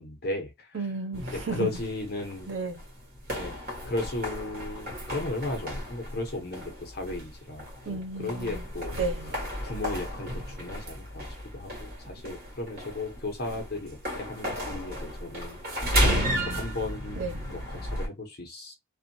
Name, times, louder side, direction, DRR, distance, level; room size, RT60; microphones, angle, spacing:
voice 1, 0.0-0.8 1.3-2.5 3.3-3.5 3.8-9.0 9.6-15.6 16.5-18.7, left 2 dB, 55° left, 0.9 m, -35 dB
voice 2, 0.7-1.7 2.5-2.8 7.8-8.6 9.0-9.3 16.0-16.6 17.2-17.4, right 3 dB, 80° right, 1.0 m, -33 dB
sound 1, 1.1-18.1, equal, 50° right, 1.3 m, -34 dB
2.6 x 2.4 x 2.7 m
head